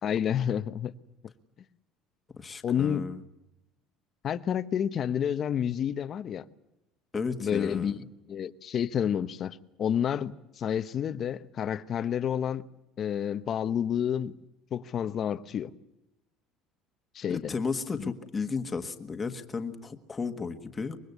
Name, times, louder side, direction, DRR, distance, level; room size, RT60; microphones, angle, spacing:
voice 1, 0.0-0.9 2.6-3.0 4.2-6.4 7.4-8.0 8.3-12.6 13.0-14.4 14.7-15.7 17.1-17.5 18.0-18.1, left 9 dB, 35° left, 0.9 m, -29 dB
voice 2, 2.4-3.2 7.1-8.0 17.3-21.0, left 4 dB, 15° left, 1.5 m, -34 dB
24.5 x 22.0 x 8.1 m
cardioid pair, 160°, 0 cm